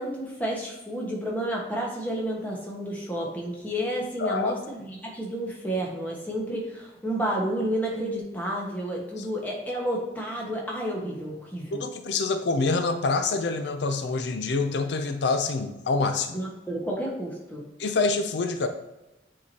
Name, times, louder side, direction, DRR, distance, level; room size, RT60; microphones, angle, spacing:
voice 1, 0.0-11.8 16.3-17.6, right 1 dB, 10° left, -3 dB, 1.4 m, -31 dB
voice 2, 4.2-4.5 9.2-9.3 11.7-16.4 17.8-18.7, left 3 dB, 80° left, 8 dB, 0.5 m, -26 dB
8.4 x 4.8 x 2.8 m, 0.98 s
head